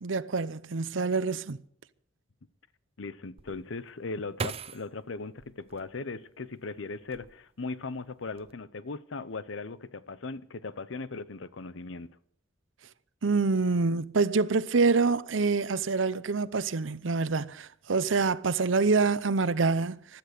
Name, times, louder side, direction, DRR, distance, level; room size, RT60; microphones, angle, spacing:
voice 1, 0.0-1.6 13.2-20.2, right 4 dB, 85° right, 0.7 m, -26 dB
voice 2, 3.0-12.2, left 3 dB, 85° left, 0.8 m, -38 dB
sound 1, 3.4-6.5 7.0-7.7 8.1-8.5, right 4 dB, 30° right, 0.5 m, -40 dB
16.0 x 12.0 x 6.7 m
head